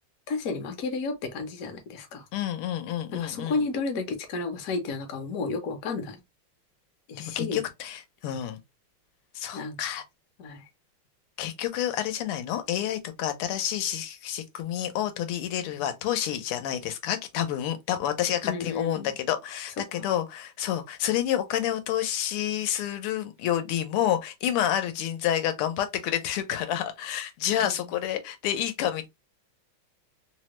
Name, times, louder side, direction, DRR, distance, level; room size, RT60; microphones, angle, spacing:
voice 1, 0.3-2.3 3.1-6.2 7.1-7.6 9.5-9.8 10.4-10.7 18.4-19.1 19.9-20.1 27.6-27.8, left 4 dB, 60° left, 0.9 m, -32 dB
voice 2, 2.3-3.6 7.2-8.6 9.3-10.0 11.4-29.1, left 11 dB, 90° left, 1.6 m, -29 dB
3.7 x 2.1 x 2.9 m
omnidirectional pair, 2.4 m